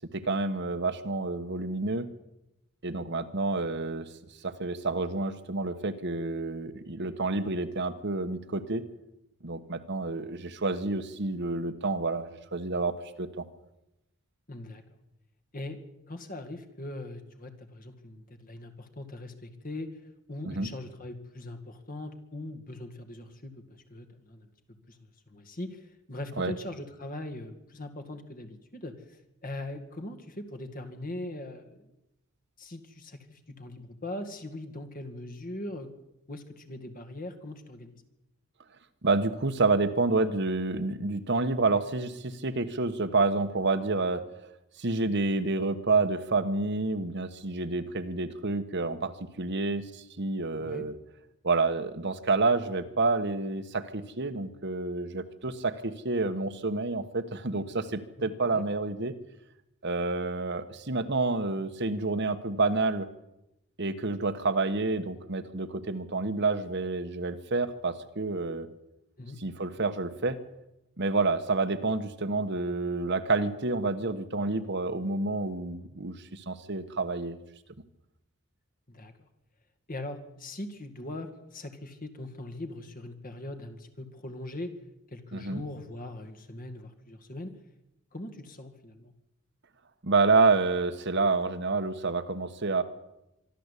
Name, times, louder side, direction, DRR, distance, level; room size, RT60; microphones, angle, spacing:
voice 1, 0.1-2.1 2.8-4.0 4.4-8.8 9.4-13.4 20.4-20.7 26.4-26.5 39.0-44.2 44.8-51.0 51.4-59.1 59.8-63.1 63.8-68.7 69.4-70.4 71.0-77.4 85.3-85.6 90.0-92.8, right 3 dB, 55° right, 9 dB, 1.4 m, -29 dB
voice 2, 14.5-14.8 15.5-15.8 16.1-24.5 24.9-31.9 32.6-35.9 36.3-38.0 50.6-50.9 58.2-58.6 69.2-69.4 78.9-79.3 79.9-84.7 85.1-87.5 88.1-89.1, left 1 dB, 40° left, 8 dB, 2.2 m, -41 dB
24.5 x 13.0 x 8.4 m, 0.90 s
head